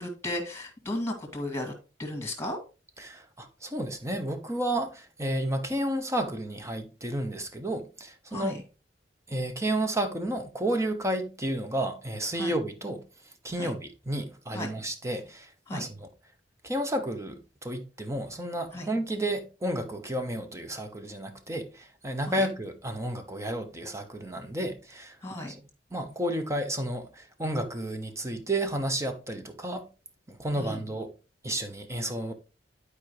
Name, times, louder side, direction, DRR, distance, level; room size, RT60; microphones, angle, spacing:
voice 1, 0.0-1.7 2.0-2.6 8.3-8.6 12.4-12.6 13.6-13.7 14.5-14.7 15.7-15.9 18.7-18.9 22.3-22.5 25.2-25.5 30.6-30.8, left 1 dB, 15° left, 2.2 m, -34 dB
voice 2, 3.0-8.6 9.3-13.0 13.4-16.1 16.6-25.2 25.5-25.6 25.9-29.9 30.3-31.1 31.4-32.3, right 1 dB, 15° right, 1.1 m, -32 dB
11.5 x 4.8 x 3.2 m
head